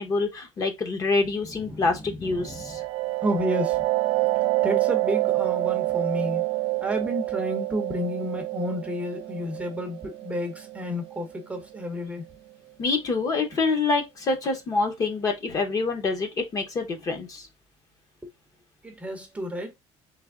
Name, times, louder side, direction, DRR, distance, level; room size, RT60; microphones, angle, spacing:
voice 1, 0.0-2.8 12.8-17.5, left 3 dB, 30° left, 0.8 m, -26 dB
voice 2, 1.7-2.8 3.2-3.8 4.3-6.4 6.8-12.2 18.2-18.3 18.8-19.7, equal, 10° right, 0.7 m, -31 dB
sound 1, 2.3-11.8, right 19 dB, 50° right, 0.5 m, -27 dB
3.3 x 3.2 x 3.6 m
cardioid pair, 170°, 12 cm